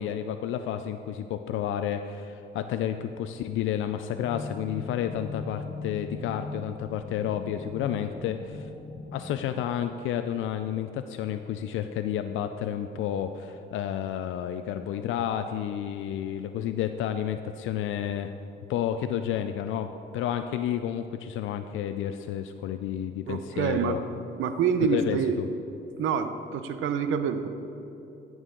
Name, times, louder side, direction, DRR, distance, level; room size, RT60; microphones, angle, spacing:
voice 1, 0.0-8.6 9.1-18.3 18.7-24.1 24.9-25.5, left 10 dB, 80° left, 8 dB, 0.4 m, -31 dB
sound 1, 4.1-9.4, left 3 dB, 20° left, 1.1 m, -40 dB
voice 2, 23.3-24.0 24.4-25.4 26.0-27.5, right 6 dB, 80° right, 9 dB, 0.7 m, -26 dB
14.0 x 6.2 x 3.8 m, 2.9 s
cardioid pair, 90°, 20 cm